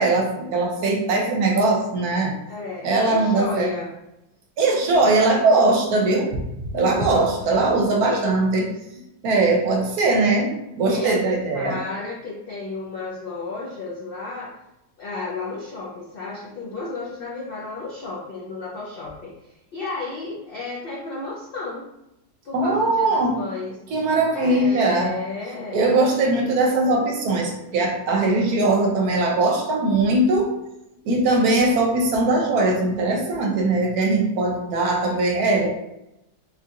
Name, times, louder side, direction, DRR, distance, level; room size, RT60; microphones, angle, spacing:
voice 1, 0.0-2.3 2.8-3.7 4.6-6.4 6.7-8.7 9.2-10.5 10.8-11.8 22.5-23.4 23.9-25.1 25.7-30.5 31.0-35.7, right 2 dB, 75° right, 0 dB, 1.1 m, -20 dB
voice 2, 2.5-3.9 7.0-7.6 8.0-8.3 10.9-14.6 15.0-21.9 22.4-23.8 24.3-25.9, left 3 dB, 80° left, -5 dB, 0.5 m, -33 dB
3.6 x 2.4 x 2.8 m, 0.89 s
omnidirectional pair, 1.7 m